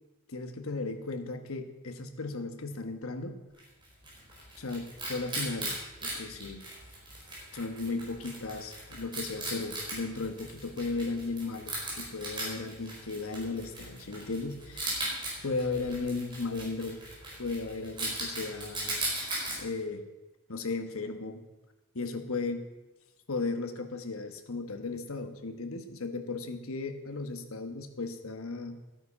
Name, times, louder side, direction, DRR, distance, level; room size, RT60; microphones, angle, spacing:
voice 1, 0.3-3.4 4.6-5.8 6.0-6.6 7.5-14.9 15.4-17.0 17.4-19.1 19.6-20.0 20.5-21.4 21.9-22.7 23.3-28.8, left 3 dB, 65° left, 7 dB, 1.2 m, -35 dB
Wild animals, 3.6-19.6, right 1 dB, 20° right, 4.5 m, -38 dB
12.5 x 9.1 x 5.7 m, 1.1 s
head